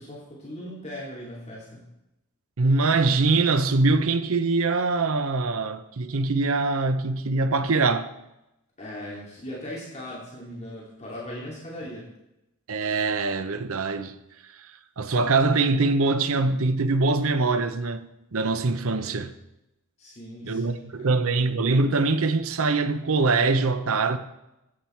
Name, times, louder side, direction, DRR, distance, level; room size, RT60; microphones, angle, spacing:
voice 1, 0.0-1.8 8.8-12.1 19.0-19.2 20.0-21.1, equal, 30° left, 2.7 m, -39 dB
voice 2, 2.6-8.1 12.7-14.2 14.6-14.7 15.0-19.3 20.4-24.2, right 3 dB, 65° right, 0.7 m, -23 dB
14.0 x 8.8 x 4.5 m
head